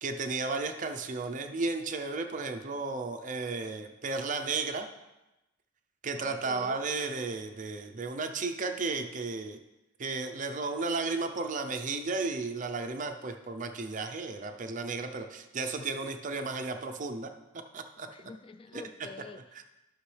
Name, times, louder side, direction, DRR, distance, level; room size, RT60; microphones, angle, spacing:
voice 1, 0.0-4.9 6.0-9.6 10.0-17.3 17.7-18.1 18.7-18.8 19.5-19.6, right 3 dB, 40° right, 6 dB, 0.6 m, -34 dB
voice 2, 6.2-6.8 18.1-19.4, left 4 dB, 30° left, 11 dB, 0.3 m, -47 dB
11.5 x 6.1 x 3.3 m, 0.98 s
head